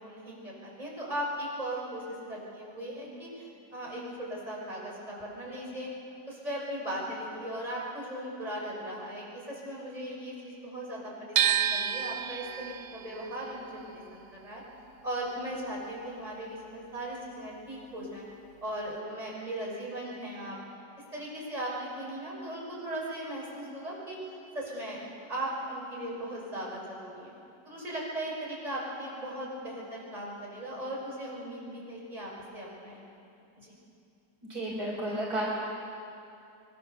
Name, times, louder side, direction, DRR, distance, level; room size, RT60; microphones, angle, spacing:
voice 1, 0.0-5.9 6.3-14.6 15.0-18.3 18.6-20.6 21.1-24.2 24.5-27.3 27.6-33.1 33.6-33.7, right 1 dB, 20° right, -4 dB, 6.2 m, -38 dB
sound 1, 11.4-17.4 17.7-19.0, right 10 dB, 85° right, 1.4 m, -32 dB
voice 2, 34.5-35.5, right 1 dB, 60° right, -3 dB, 4.4 m, -32 dB
24.5 x 21.5 x 7.0 m, 2.6 s
omnidirectional pair, 1.9 m